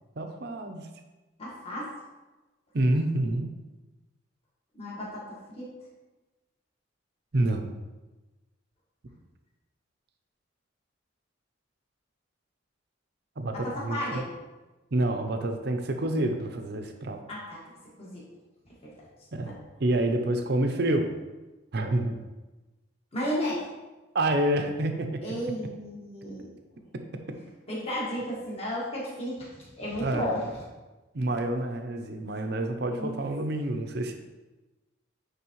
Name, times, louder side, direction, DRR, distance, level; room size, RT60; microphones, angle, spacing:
voice 1, 0.2-0.9 2.7-3.5 7.3-7.7 13.4-14.2 14.9-17.2 19.3-21.1 21.7-22.2 24.1-25.2 27.1-27.4 30.0-30.4 31.1-34.2, right 1 dB, 55° right, 6 dB, 0.6 m, -28 dB
voice 2, 1.4-1.9 4.7-5.7 13.6-14.3 17.3-17.6 18.0-18.2 18.8-18.9 23.1-23.6 25.2-26.5 27.7-30.5 32.9-33.2, equal, 30° left, -6 dB, 1.6 m, -33 dB
9.1 x 3.5 x 3.0 m, 1.1 s
head